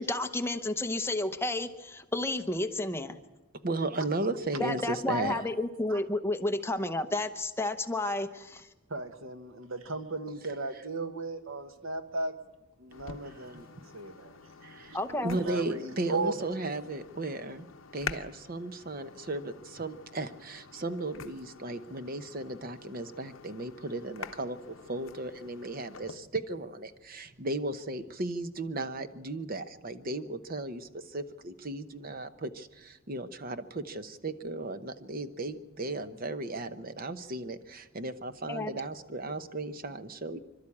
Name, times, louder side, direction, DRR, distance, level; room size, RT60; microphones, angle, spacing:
voice 1, 0.0-3.2 4.6-8.7 14.9-15.4 38.5-38.8, left 2 dB, 10° left, 7 dB, 0.8 m, -31 dB
voice 2, 3.6-5.5 13.2-13.5 14.6-15.0 15.2-17.7 17.9-40.4, right 2 dB, 45° right, 11 dB, 1.0 m, -35 dB
voice 3, 8.9-12.3 12.8-13.7 13.9-14.3 15.4-16.3, right 3 dB, 80° right, 8 dB, 1.5 m, -36 dB
sound 1, 12.9-26.1, left 6 dB, 75° left, 0.8 m, -47 dB
26.5 x 12.5 x 8.6 m, 1.1 s
head